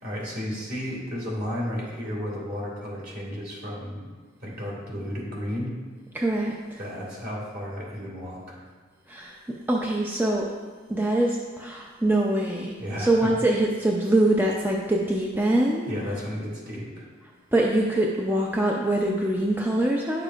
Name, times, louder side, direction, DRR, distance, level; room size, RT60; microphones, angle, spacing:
voice 1, 0.0-4.0 4.4-5.7 6.8-8.6 12.8-13.3 15.9-17.1, equal, 50° right, -3 dB, 2.1 m, -33 dB
voice 2, 6.1-6.8 9.1-10.5 10.9-15.9 17.5-20.2, right 1 dB, 10° right, -2 dB, 0.4 m, -24 dB
9.8 x 6.7 x 2.4 m, 1.4 s
head